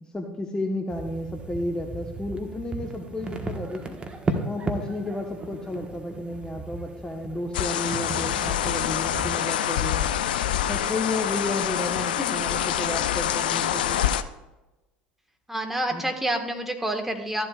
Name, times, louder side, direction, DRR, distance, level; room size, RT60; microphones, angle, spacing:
voice 1, 0.1-4.0 4.4-10.1 10.7-14.0 15.9-16.0, left 1 dB, 15° left, 3 dB, 1.2 m, -32 dB
sound 1, 0.9-9.3, right 2 dB, 20° right, 1.4 m, -35 dB
sound 2, 7.5-14.2, left 10 dB, 75° left, 0.5 m, -26 dB
voice 2, 8.1-8.6 12.2-12.3 15.5-17.5, right 1 dB, 5° right, 4 dB, 1.7 m, -29 dB
14.0 x 11.0 x 2.5 m, 1.1 s
hypercardioid pair, 70°, 5 cm